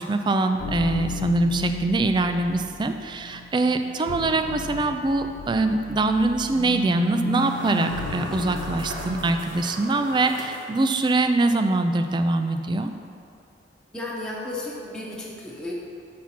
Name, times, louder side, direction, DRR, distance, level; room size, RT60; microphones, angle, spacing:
voice 1, 0.0-12.9, right 2 dB, 25° right, 7 dB, 0.3 m, -23 dB
sound 1, 0.6-9.8, left 2 dB, 85° left, 0.4 m, -34 dB
sound 2, 7.3-11.3, right 1 dB, 85° right, 1.1 m, -38 dB
voice 2, 13.9-15.7, left 2 dB, 5° left, -6 dB, 0.9 m, -33 dB
7.4 x 4.2 x 5.8 m, 2.5 s
head